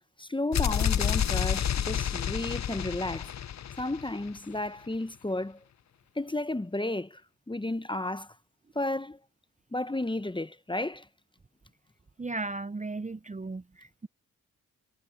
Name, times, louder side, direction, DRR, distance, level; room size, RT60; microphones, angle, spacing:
voice 1, 0.2-3.3 3.8-5.6 6.2-7.2 7.5-8.3 8.7-9.2 9.7-11.1, left 2 dB, 15° left, 0.9 m, -32 dB
sound 1, 0.5-4.4, left 9 dB, 50° left, 0.8 m, -29 dB
voice 2, 12.2-14.1, right 3 dB, 20° right, 0.8 m, -36 dB
supercardioid pair, 45°, 35 cm